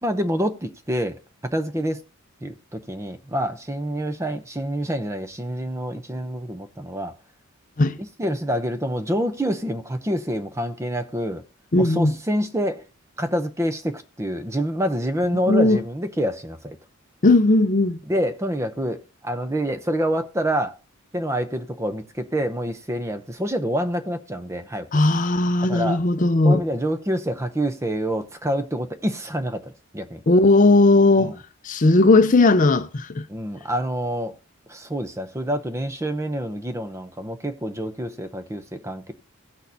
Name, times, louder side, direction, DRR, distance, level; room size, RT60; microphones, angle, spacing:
voice 1, 0.0-1.2 1.5-2.0 2.4-7.1 8.2-11.4 11.7-12.8 13.2-16.8 18.1-20.7 21.1-24.9 25.7-26.0 26.4-30.2 31.2-31.4 33.3-34.3 34.7-39.1, equal, 15° right, 0.6 m, -27 dB
voice 2, 11.7-12.1 15.5-15.8 17.2-18.0 24.9-26.6 30.3-31.3 31.6-33.3, left 2 dB, 40° left, 0.6 m, -17 dB
17.0 x 6.3 x 2.7 m
head